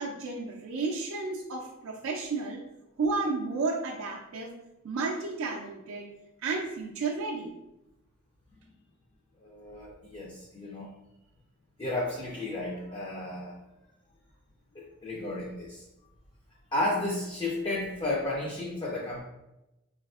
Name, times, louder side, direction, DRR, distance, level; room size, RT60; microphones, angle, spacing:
voice 1, 0.0-2.6 3.0-4.6 4.8-6.1 6.4-7.5, right 3 dB, 70° right, -1 dB, 0.4 m, -32 dB
voice 2, 9.4-10.9 11.8-13.5 14.7-15.8 16.7-19.2, left 2 dB, 20° left, -3 dB, 0.3 m, -33 dB
4.1 x 2.4 x 2.3 m, 0.94 s
head